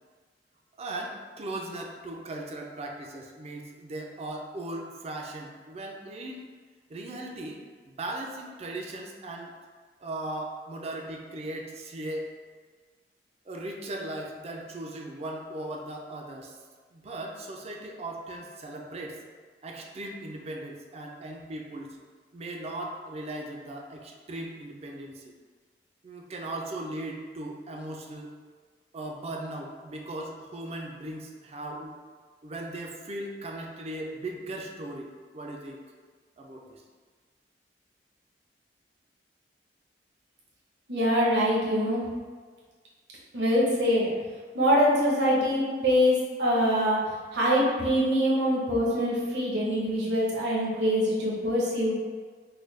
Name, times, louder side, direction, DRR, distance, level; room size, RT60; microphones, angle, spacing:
voice 1, 0.8-6.5 6.9-7.6 7.9-9.5 10.0-12.3 13.5-16.6 16.9-19.2 19.6-22.0 22.3-25.3 26.0-28.3 28.9-31.9 32.4-35.8 36.4-36.7, right 1 dB, 35° right, 1 dB, 0.4 m, -38 dB
voice 2, 40.9-42.0 43.3-44.1 44.5-47.0 47.3-51.9, equal, 70° right, -5 dB, 0.9 m, -24 dB
3.8 x 2.2 x 3.2 m, 1.5 s
head